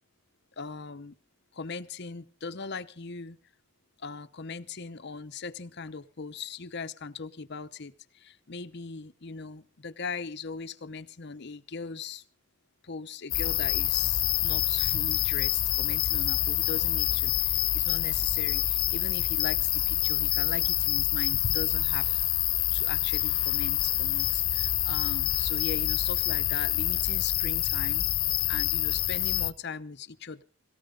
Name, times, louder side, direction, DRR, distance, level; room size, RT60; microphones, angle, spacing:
voice 1, 0.6-1.1 1.5-3.4 4.0-12.2 12.8-22.3 22.7-28.1 28.5-30.4, left 4 dB, 55° left, 11 dB, 0.8 m, -39 dB
sound 1, 13.3-29.5, left 14 dB, 90° left, 0.8 m, -27 dB
18.5 x 17.5 x 4.0 m, 0.38 s
head